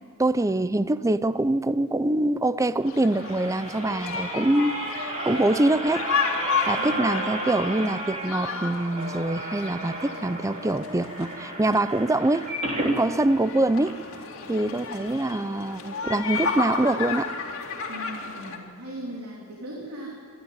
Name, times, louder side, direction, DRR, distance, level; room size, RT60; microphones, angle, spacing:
voice 1, 0.2-6.1 6.4-12.5 12.8-14.0 14.5-17.3, right 2 dB, 15° right, 15 dB, 0.5 m, -24 dB
sound 1, 2.8-13.0 13.5-13.6 13.8-13.9, right 1 dB, 30° right, 3.8 m, -33 dB
sound 2, 2.9-18.6, left 5 dB, 65° left, 2.6 m, -33 dB
voice 2, 6.7-7.4 17.9-20.2, right 1 dB, 90° right, -3 dB, 3.4 m, -39 dB
26.5 x 12.0 x 9.6 m, 2.5 s
head